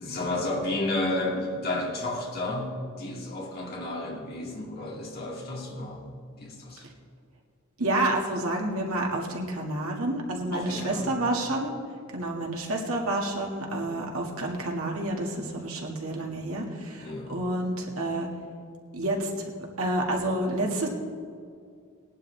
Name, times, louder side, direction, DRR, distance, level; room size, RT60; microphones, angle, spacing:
voice 1, 0.0-6.0 6.4-6.9 10.5-11.1 17.0-17.3, left 2 dB, 45° left, -4 dB, 2.6 m, -32 dB
voice 2, 7.8-11.7 12.1-18.3 18.9-19.5 19.8-20.9, right 1 dB, 85° right, 0 dB, 2.0 m, -29 dB
19.0 x 11.0 x 3.4 m, 2.2 s
head